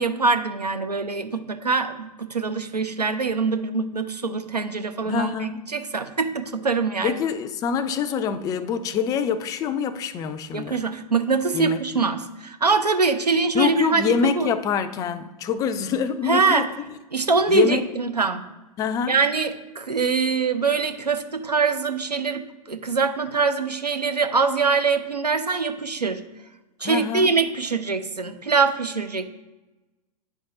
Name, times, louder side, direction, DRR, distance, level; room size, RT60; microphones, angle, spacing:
voice 1, 0.0-7.2 10.5-14.5 16.3-16.7 17.1-18.4 19.1-26.2 26.8-29.2, right 4 dB, 90° right, 0.6 m, -23 dB
voice 2, 5.0-5.6 7.0-10.8 11.5-11.9 13.5-16.7 17.5-17.8 18.8-19.2 26.8-27.3, left 7 dB, 20° left, 0.3 m, -25 dB
9.5 x 3.6 x 3.8 m
figure-of-eight pair, 100°, 20 cm